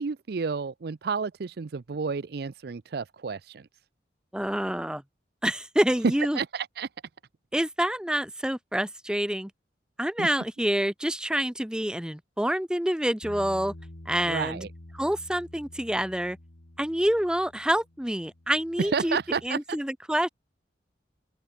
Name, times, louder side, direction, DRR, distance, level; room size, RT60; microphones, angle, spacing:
voice 1, 0.0-3.7 6.3-6.9 10.2-10.3 14.3-14.7 18.8-19.8, right 5 dB, 60° right, 0.5 m, -31 dB
voice 2, 4.3-5.0 5.4-6.4 7.5-9.5 10.0-13.7 14.1-14.7 14.9-16.4 16.8-19.2 19.4-20.3, equal, 5° right, 0.8 m, -27 dB
Bass guitar, 13.2-19.5, left 1 dB, 90° left, 2.1 m, -48 dB
open air
head